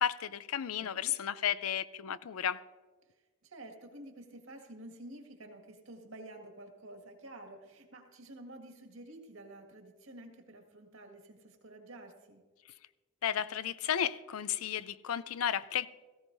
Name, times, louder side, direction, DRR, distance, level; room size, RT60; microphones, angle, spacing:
voice 1, 0.0-2.6 13.2-15.9, left 9 dB, 90° left, 16 dB, 0.5 m, -33 dB
voice 2, 0.8-1.1 3.4-12.4, right 1 dB, 75° right, 4 dB, 1.9 m, -50 dB
17.5 x 15.0 x 2.7 m, 1.3 s
head